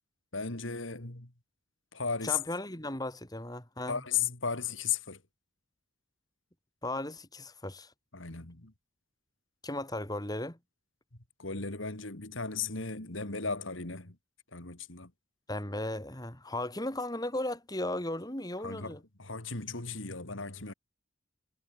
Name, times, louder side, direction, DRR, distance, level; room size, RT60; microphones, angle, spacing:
voice 1, 0.3-1.3 1.9-2.4 3.9-5.2 8.1-8.7 11.4-14.1 14.5-15.1 18.6-20.7, left 6 dB, 75° left, 3.1 m, -35 dB
voice 2, 2.2-4.0 6.8-7.9 9.6-10.6 15.5-19.0, left 1 dB, 20° left, 4.1 m, -36 dB
head